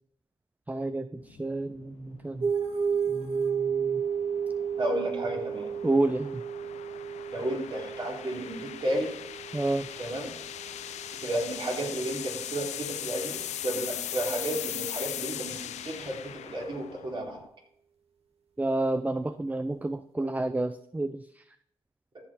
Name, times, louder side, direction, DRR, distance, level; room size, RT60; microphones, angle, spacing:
voice 1, 0.7-2.5 3.1-4.0 5.8-6.4 9.5-9.9 18.6-21.4, right 2 dB, 15° right, 12 dB, 0.5 m, -30 dB
sound 1, 1.2-17.5, left 11 dB, 70° left, 0.6 m, -40 dB
sound 2, 2.4-11.3, right 6 dB, 60° right, 1.9 m, -33 dB
voice 2, 4.8-5.7 7.3-9.1 10.0-10.4 11.2-17.4, right 1 dB, 45° right, -1 dB, 3.5 m, -32 dB
13.5 x 5.3 x 4.3 m, 0.73 s
supercardioid pair, 50°, 12 cm